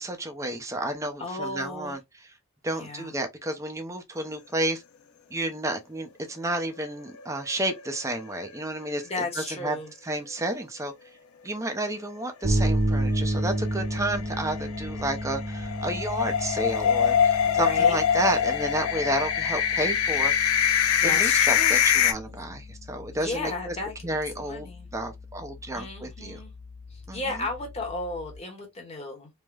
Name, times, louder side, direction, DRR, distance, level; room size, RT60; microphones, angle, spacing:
voice 1, 0.0-2.0 2.6-4.8 5.3-9.8 10.0-10.9 11.4-20.3 21.0-23.8 24.0-24.7 24.9-26.4 27.1-27.2, right 1 dB, 15° right, 0.5 m, -31 dB
voice 2, 1.2-2.0 2.7-3.1 9.0-9.9 17.4-18.0 21.0-21.8 22.3-22.5 23.1-24.9 25.7-26.5 26.9-29.3, left 2 dB, 30° left, 1.0 m, -34 dB
sound 1, 7.2-8.1 8.4-8.5 8.9-9.0 13.1-22.1, left 8 dB, 75° left, 0.4 m, -24 dB
sound 2, 12.4-28.4, right 1 dB, 75° right, 1.3 m, -33 dB
3.2 x 2.1 x 2.3 m
head